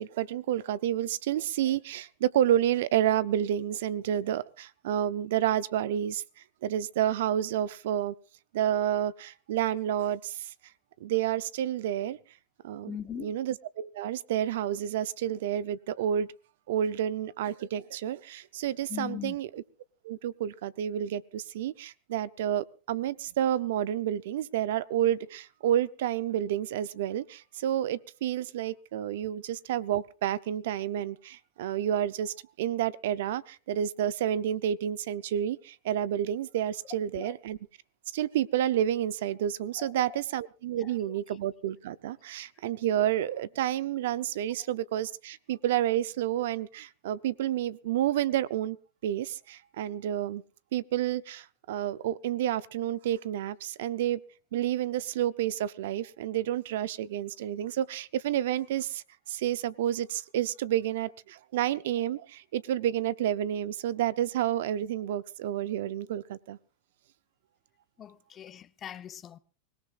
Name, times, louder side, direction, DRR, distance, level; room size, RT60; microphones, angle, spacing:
voice 1, 0.0-6.2 6.6-8.1 8.5-10.5 11.0-12.2 12.6-12.9 13.2-16.3 16.7-19.6 20.0-37.6 38.1-48.8 49.0-50.4 50.7-54.2 54.5-66.6, right 11 dB, 75° right, 0.7 m, -30 dB
voice 2, 12.9-13.3 18.9-19.4 29.2-29.3 37.1-37.4 39.8-40.2 40.8-41.1 68.0-69.4, left 10 dB, 30° left, 0.8 m, -41 dB
24.5 x 18.0 x 2.5 m
hypercardioid pair, 120°, 0 cm